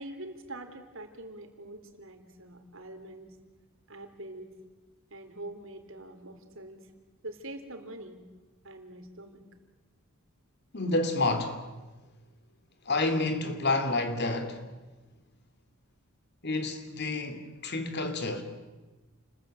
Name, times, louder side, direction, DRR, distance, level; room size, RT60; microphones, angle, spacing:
voice 1, 0.0-3.4 3.9-4.5 5.1-6.9 7.2-8.2 8.6-9.4, right 1 dB, 60° right, 3.6 m, -44 dB
voice 2, 10.7-11.7 12.9-14.6 16.4-18.4, left 2 dB, 50° left, 2.8 m, -29 dB
29.5 x 21.0 x 9.1 m
head